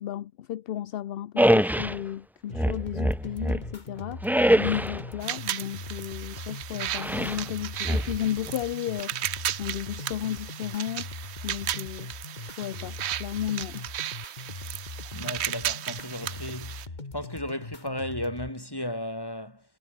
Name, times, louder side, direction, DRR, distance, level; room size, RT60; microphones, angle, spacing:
voice 1, 0.0-4.2 4.5-9.3 9.6-11.1 11.4-12.1 12.4-13.9, left 11 dB, 65° left, 0.8 m, -33 dB
sound 1, 1.4-2.0 2.5-3.7 4.2-5.1 7.0-7.4 7.8-8.5, equal, ahead, 0.5 m, -24 dB
sound 2, 2.5-18.5, left 3 dB, 45° left, 2.3 m, -41 dB
sound 3, 5.2-16.9, right 12 dB, 85° right, 0.9 m, -35 dB
voice 2, 15.1-16.9 17.1-19.6, left 1 dB, 20° left, 5.1 m, -34 dB
omnidirectional pair, 1.1 m